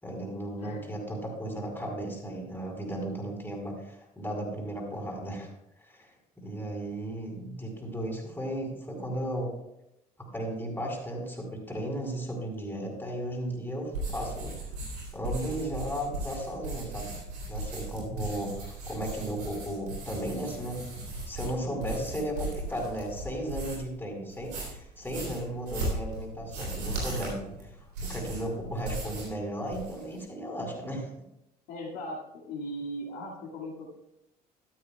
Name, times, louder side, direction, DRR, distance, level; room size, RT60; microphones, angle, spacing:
voice 1, 0.0-5.5 5.9-6.1 6.4-9.5 10.2-14.7 15.1-17.1 17.4-20.8 21.3-31.1, right 1 dB, 10° left, -1 dB, 4.6 m, -35 dB
sound 1, 13.9-23.9 24.3-29.4 29.6-30.2, right 2 dB, 80° right, 3.6 m, -37 dB
voice 2, 31.7-33.9, equal, 65° left, -4 dB, 2.1 m, -38 dB
13.5 x 13.0 x 2.3 m, 0.84 s
figure-of-eight pair, 55°, 20 cm